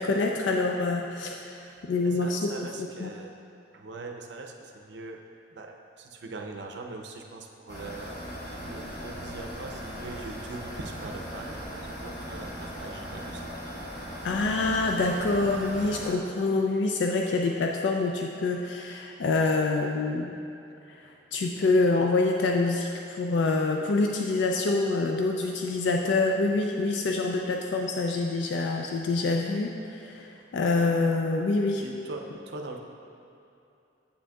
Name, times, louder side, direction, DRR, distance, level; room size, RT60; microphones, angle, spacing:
voice 1, 0.0-1.5 1.8-3.1 14.2-20.3 21.3-31.8, left 3 dB, 80° left, 1 dB, 0.4 m, -26 dB
voice 2, 1.6-3.4 3.7-5.2 5.5-8.2 8.6-13.5 31.8-32.8, right 3 dB, 65° right, 3 dB, 0.5 m, -41 dB
sound 1, 7.7-16.2, equal, 40° left, 1.4 m, -39 dB
8.2 x 6.2 x 2.3 m, 2.7 s
head